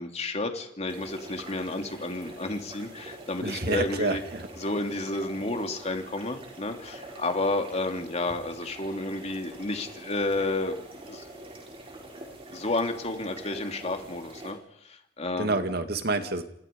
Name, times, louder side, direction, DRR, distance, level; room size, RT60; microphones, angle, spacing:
voice 1, 0.0-4.2 4.6-10.8 11.0-11.2 12.5-14.6 14.8-15.6, left 2 dB, 40° left, 4 dB, 2.9 m, -31 dB
sound 1, 0.9-14.5, right 1 dB, 30° right, 7.0 m, -45 dB
voice 2, 3.4-4.5 15.4-16.4, right 2 dB, 60° right, 7 dB, 2.2 m, -28 dB
29.0 x 28.0 x 5.4 m, 0.76 s
head